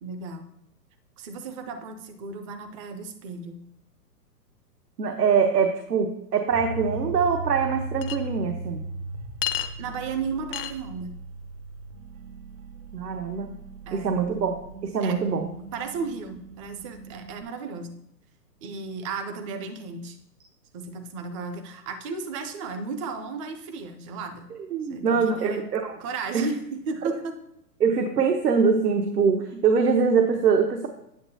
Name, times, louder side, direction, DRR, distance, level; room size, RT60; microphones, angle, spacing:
voice 1, 0.0-0.5 1.2-3.6 9.8-11.2 13.9-14.1 15.0-15.2 15.7-17.9 18.6-20.2 20.7-24.4 24.9-25.7 26.0-27.3, right 4 dB, 20° right, 8 dB, 0.5 m, -34 dB
voice 2, 5.0-8.8 12.9-13.5 13.9-14.6 14.8-15.5 24.5-26.0 26.3-26.5 27.8-30.9, right 5 dB, 75° right, 5 dB, 1.1 m, -23 dB
sound 1, 6.5-17.4, right 3 dB, 55° right, 0.9 m, -38 dB
Chink clink, 8.0-8.2 9.4-9.7 10.5-10.7, left 12 dB, 35° left, 0.6 m, -29 dB
8.8 x 7.8 x 2.7 m, 0.80 s
figure-of-eight pair, 120°, 49 cm